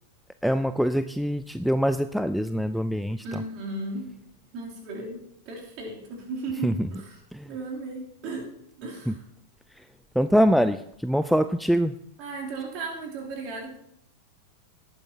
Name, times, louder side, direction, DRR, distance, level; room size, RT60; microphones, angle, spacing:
voice 1, 0.4-3.4 6.6-6.9 7.3-7.5 9.1-9.2 9.8-9.9 10.2-11.9, equal, ahead, 11 dB, 0.3 m, -24 dB
voice 2, 3.2-4.1 4.5-7.2 7.4-8.4 8.8-9.2 12.2-13.8, right 2 dB, 40° right, -2 dB, 3.1 m, -35 dB
18.0 x 8.9 x 2.8 m, 0.75 s
figure-of-eight pair, 90°, 0 cm